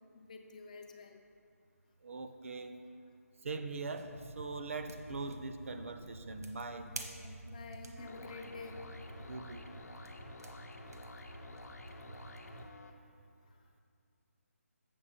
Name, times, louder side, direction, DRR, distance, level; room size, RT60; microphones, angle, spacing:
voice 1, 0.1-1.2 6.0-6.1 6.9-8.8 10.9-11.0, left 4 dB, 30° left, 4 dB, 0.4 m, -49 dB
voice 2, 2.0-2.7 3.4-6.9 9.3-9.6, right 3 dB, 55° right, 8 dB, 0.5 m, -41 dB
sound 1, 3.9-12.7, right 1 dB, 80° right, 1.0 m, -49 dB
sound 2, 8.0-12.9, left 2 dB, 85° left, 0.8 m, -52 dB
7.6 x 6.9 x 4.3 m, 2.4 s
hypercardioid pair, 165°, 8 cm